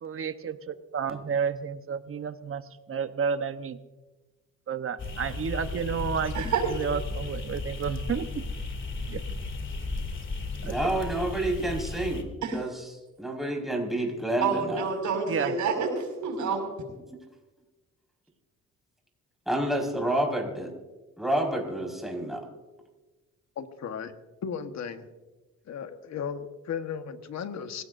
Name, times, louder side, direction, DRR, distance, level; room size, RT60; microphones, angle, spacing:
voice 1, 0.0-2.6 2.9-3.8 4.7-6.3 6.7-8.2 9.1-9.2 10.6-10.7 15.3-15.5, right 6 dB, 45° right, 10 dB, 1.1 m, -31 dB
sound 1, 5.0-12.2, left 3 dB, 40° left, 2.7 m, -35 dB
voice 2, 6.3-7.0 12.4-12.6 14.4-16.6, right 5 dB, 80° right, 3 dB, 5.8 m, -28 dB
voice 3, 10.6-12.3 12.5-12.7 13.2-14.8 19.4-20.7 21.2-22.4, right 1 dB, ahead, 0 dB, 5.1 m, -29 dB
voice 4, 23.6-24.1 24.4-25.1 25.7-27.8, left 7 dB, 60° left, 8 dB, 1.4 m, -35 dB
26.0 x 17.0 x 2.7 m, 1.2 s
cardioid pair, 90°, 30 cm